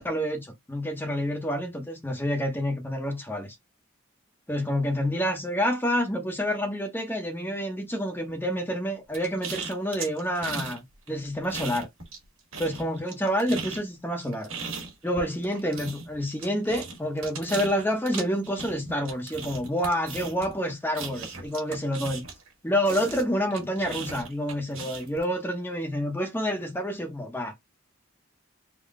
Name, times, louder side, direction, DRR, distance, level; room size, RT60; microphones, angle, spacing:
voice 1, 0.0-3.5 4.5-11.9 12.6-14.5 15.0-22.2 22.6-27.5, equal, 10° left, 0.8 m, -28 dB
sound 1, 9.1-10.8 11.1-12.2 12.5-22.5 22.8-25.2, right 4 dB, 80° right, 1.6 m, -37 dB
3.7 x 2.2 x 3.5 m
head